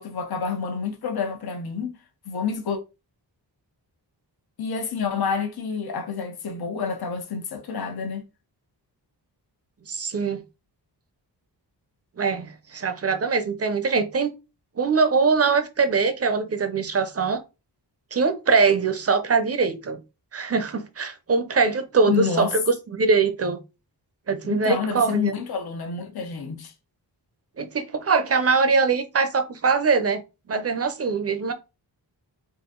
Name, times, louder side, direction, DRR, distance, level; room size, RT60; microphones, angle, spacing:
voice 1, 0.0-1.9 2.2-2.8 4.6-8.2 22.1-22.5 24.4-26.7, left 6 dB, 65° left, 0.9 m, -28 dB
voice 2, 9.9-10.4 12.2-14.3 14.8-17.4 18.1-20.0 20.3-22.6 22.9-23.6 24.3-25.3 27.6-30.2 30.5-31.5, right 4 dB, 35° right, 0.6 m, -22 dB
4.0 x 2.6 x 3.7 m
wide cardioid pair, 120°, 41 cm